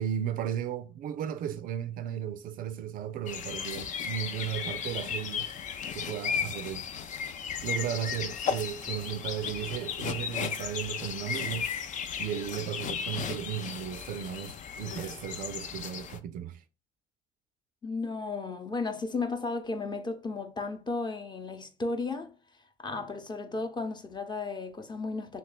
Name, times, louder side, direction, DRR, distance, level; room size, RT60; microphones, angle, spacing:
voice 1, 0.0-5.5 5.9-6.9 7.6-11.7 12.2-16.6, right 10 dB, 55° right, 0.4 m, -35 dB
sound 1, 3.3-16.2, left 7 dB, 50° left, 0.5 m, -35 dB
voice 2, 17.8-22.3 22.8-25.4, left 3 dB, 25° left, 0.8 m, -34 dB
3.0 x 2.8 x 4.0 m
hypercardioid pair, 60°, 17 cm